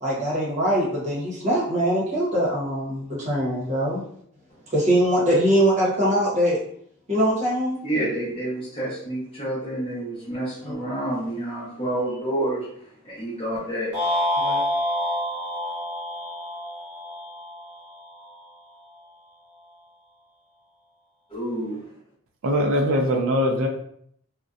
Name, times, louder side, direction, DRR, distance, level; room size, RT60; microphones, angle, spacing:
voice 1, 0.0-4.0 4.7-6.6 7.1-7.8 10.6-10.7 14.4-14.6, equal, 30° right, -6 dB, 0.8 m, -22 dB
voice 2, 7.8-14.1 21.3-22.0, right 1 dB, 25° left, -9 dB, 0.8 m, -29 dB
sound 1, 13.9-18.2, left 1 dB, 5° right, 1.1 m, -27 dB
voice 3, 22.4-23.7, equal, 65° right, 2 dB, 0.4 m, -21 dB
2.5 x 2.1 x 2.4 m, 0.66 s
head